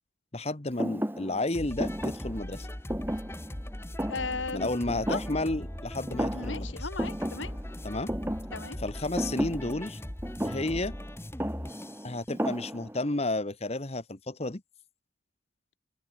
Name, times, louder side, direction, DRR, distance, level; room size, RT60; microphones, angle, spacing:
voice 1, 0.3-2.7 4.5-6.8 7.8-8.1 8.8-10.0 10.4-10.9 12.0-14.6, left 2 dB, 35° left, 1.3 m, -32 dB
Thump thud, 0.8-5.8 6.1-6.7 7.0-13.1, equal, 10° right, 2.4 m, -35 dB
sound 1, 1.5-12.1, left 1 dB, 15° left, 1.1 m, -40 dB
voice 2, 4.1-4.7 5.1-5.2 6.3-7.6 8.5-8.8, left 4 dB, 75° left, 1.9 m, -36 dB
head